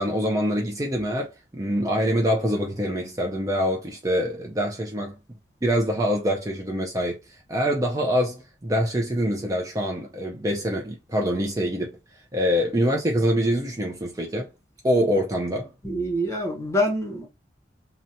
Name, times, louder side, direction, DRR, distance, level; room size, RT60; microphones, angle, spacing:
voice 1, 0.0-5.2 5.6-7.2 7.5-11.9 12.3-14.5 14.8-15.7, equal, 20° right, 0.5 m, -25 dB
voice 2, 15.8-17.3, equal, 15° left, 0.8 m, -25 dB
2.9 x 2.1 x 2.7 m
head